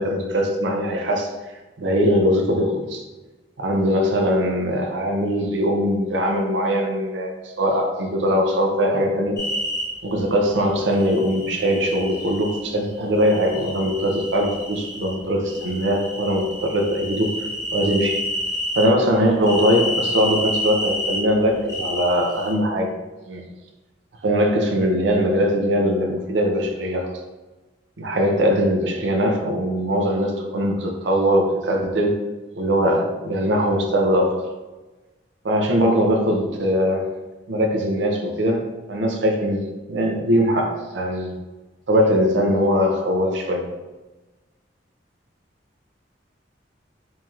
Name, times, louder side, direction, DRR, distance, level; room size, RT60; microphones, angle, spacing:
voice 1, 0.0-1.3 1.8-3.0 3.6-9.4 10.0-17.4 17.7-18.2 18.8-22.9 23.3-23.4 24.2-27.1 28.0-32.2 32.5-34.3 35.4-37.1 37.5-38.6 38.9-39.6 39.9-41.3 41.9-43.6, equal, 80° right, 2 dB, 0.5 m, -21 dB
sound 1, 9.4-9.8 11.0-12.6 13.2-15.1 15.5-18.9 19.4-21.2 21.7-22.5, left 1 dB, 15° left, 0.9 m, -29 dB
4.5 x 2.7 x 2.4 m, 1.2 s
head